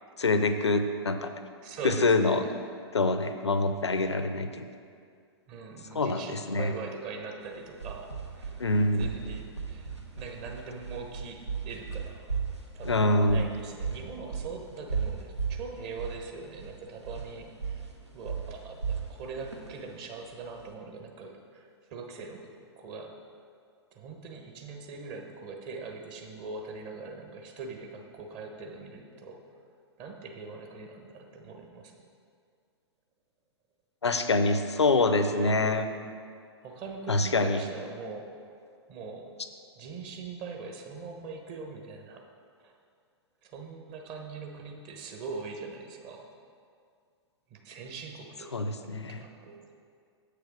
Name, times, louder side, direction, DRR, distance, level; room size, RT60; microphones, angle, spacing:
voice 1, 0.2-1.3 1.8-2.4 2.9-4.7 5.9-6.7 8.6-9.1 12.8-13.4 34.0-35.9 37.1-37.6 48.5-49.2, left 2 dB, 80° left, 9 dB, 0.6 m, -25 dB
voice 2, 1.6-2.5 5.5-8.6 9.0-12.3 12.7-17.8 18.1-23.1 23.9-29.4 30.0-31.9 35.2-35.8 36.6-38.3 38.9-39.3 39.7-42.2 42.6-42.7 43.4-46.2 47.5-49.7, right 4 dB, 35° right, 3 dB, 1.1 m, -42 dB
sound 1, 7.5-20.7, right 5 dB, 90° right, 1.1 m, -36 dB
7.8 x 6.7 x 4.9 m, 2.2 s
figure-of-eight pair, 105°, 14 cm